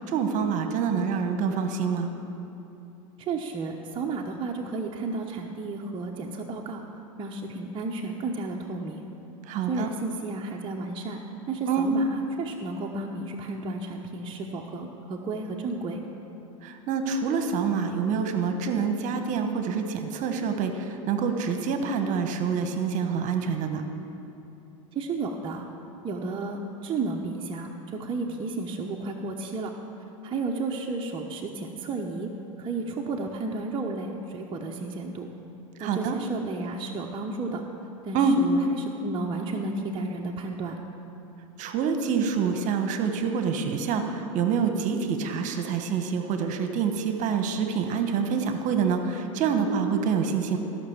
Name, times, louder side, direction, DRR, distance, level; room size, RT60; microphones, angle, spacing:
voice 1, 0.0-2.1 9.5-9.9 11.7-11.9 16.6-23.8 35.8-36.2 38.1-38.4 41.6-50.6, right 6 dB, 50° right, 6 dB, 1.3 m, -26 dB
voice 2, 3.2-6.8 7.2-9.0 9.7-11.2 11.5-16.0 24.9-25.6 26.0-29.7 30.2-32.3 32.6-35.3 35.8-37.6 38.0-40.8, right 3 dB, 30° right, -1 dB, 1.0 m, -32 dB
15.0 x 6.1 x 7.2 m, 2.9 s
hypercardioid pair, 95°, 17 cm